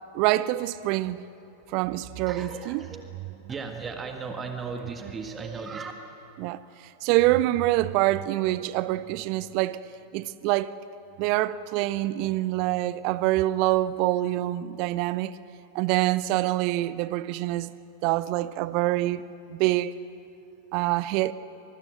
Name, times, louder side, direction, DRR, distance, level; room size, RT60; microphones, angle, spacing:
voice 1, 0.1-1.2 1.7-2.8 6.4-6.6 7.0-9.8 10.1-10.7 11.2-15.4 15.7-17.7 18.0-19.2 19.5-19.9 20.7-21.3, right 16 dB, 45° right, 0.7 m, -25 dB
voice 2, 2.3-3.0 3.5-5.9, right 5 dB, 20° right, 1.7 m, -36 dB
24.0 x 22.0 x 8.0 m
figure-of-eight pair, 90°, 0 cm